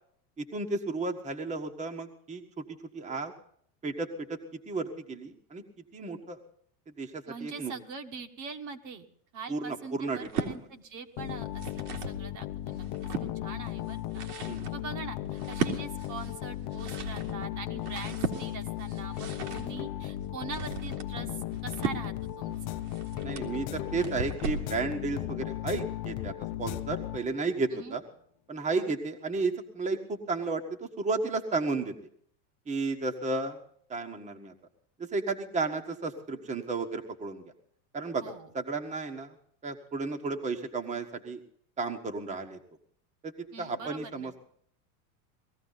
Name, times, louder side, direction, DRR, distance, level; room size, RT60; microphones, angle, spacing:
voice 1, 0.4-2.6 2.9-3.3 3.8-5.6 5.9-6.4 7.0-7.7 9.5-10.5 14.5-14.6 19.4-19.5 23.2-28.0 28.5-31.9 32.7-33.6 33.9-34.5 35.0-37.4 37.9-39.3 39.6-41.4 41.8-42.6 43.2-44.4, right 3 dB, 15° right, 4 dB, 1.3 m, -33 dB
voice 2, 7.3-9.1 9.3-11.6 11.9-12.9 13.2-14.3 14.7-22.7 27.7-28.0 28.7-28.9 38.1-38.5 43.5-44.3, right 5 dB, 40° right, 5 dB, 1.5 m, -43 dB
sound 1, 10.1-10.6 11.3-12.2 12.7-13.3 13.9-24.7, right 5 dB, 85° right, 2.9 m, -37 dB
sound 2, 11.2-27.6, left 13 dB, 50° left, 0.8 m, -36 dB
19.0 x 14.5 x 4.0 m, 0.62 s
supercardioid pair, 140°, 44 cm